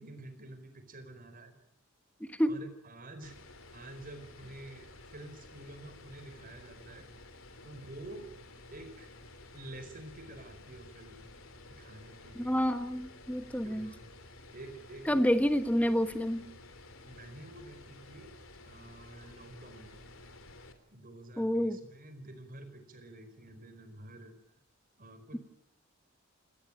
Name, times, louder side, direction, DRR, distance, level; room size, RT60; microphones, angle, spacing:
voice 1, 0.0-1.5 2.5-3.4 3.7-7.1 7.6-8.3 8.7-9.1 9.5-11.3 11.7-12.6 13.6-14.1 14.5-15.2 17.0-18.3 18.6-20.0 20.9-24.3 25.0-25.4, right 1 dB, 45° right, 9 dB, 4.8 m, -49 dB
voice 2, 2.2-2.6 12.3-13.9 15.1-16.5 21.4-21.8, equal, 5° left, 10 dB, 1.5 m, -29 dB
sound 1, 3.2-20.7, left 2 dB, 75° left, 3.2 m, -53 dB
28.5 x 19.0 x 8.9 m, 0.72 s
head